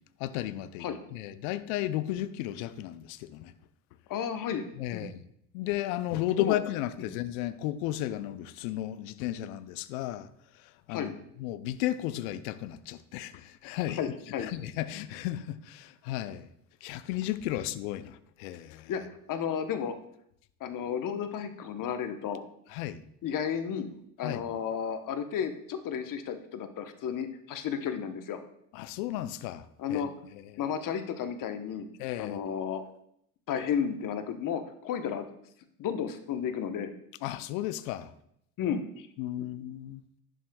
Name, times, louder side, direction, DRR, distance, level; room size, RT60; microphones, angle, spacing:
voice 1, 0.2-3.5 4.8-5.2 5.5-10.3 10.6-14.0 14.4-16.5 16.8-18.9 22.7-23.0 24.2-24.5 28.7-30.1 30.3-30.5 32.0-32.4 37.2-38.1 39.2-40.0, left 13 dB, 65° left, 0.6 m, -34 dB
voice 2, 4.1-4.7 4.9-5.1 6.4-6.6 10.9-11.1 13.9-14.5 18.9-19.0 19.3-19.9 20.6-22.4 23.2-23.9 24.2-28.4 29.8-30.1 30.6-31.9 32.2-32.8 33.5-35.3 35.8-36.9 38.6-39.1, left 8 dB, 45° left, 0.9 m, -32 dB
11.0 x 6.3 x 2.3 m
hypercardioid pair, 75°, 45 cm